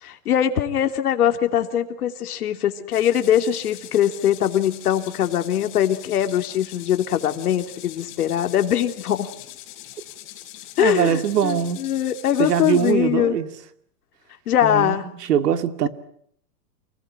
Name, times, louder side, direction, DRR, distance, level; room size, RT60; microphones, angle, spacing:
voice 1, 0.0-9.3 10.8-13.4 14.5-15.1, left 10 dB, 70° left, 3.1 m, -22 dB
sound 1, 2.9-12.9, left 14 dB, 25° left, 4.3 m, -42 dB
voice 2, 10.8-11.8 12.4-13.5 14.6-15.9, right 8 dB, 90° right, 2.5 m, -22 dB
28.5 x 20.0 x 9.1 m
supercardioid pair, 170°, 46 cm